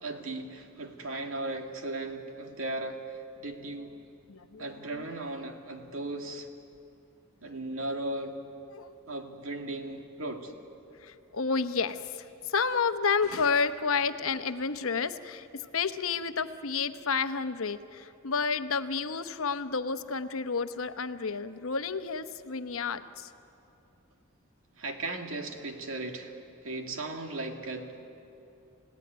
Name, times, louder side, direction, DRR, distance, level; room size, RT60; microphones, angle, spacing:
voice 1, 0.0-3.9 4.6-6.5 7.4-8.4 9.1-10.5 24.8-28.1, right 2 dB, 75° right, 4 dB, 2.3 m, -37 dB
voice 2, 4.3-4.7 8.7-8.9 11.0-15.5 15.7-23.3, left 5 dB, 80° left, 10 dB, 0.9 m, -30 dB
29.5 x 16.5 x 9.4 m, 2.8 s
head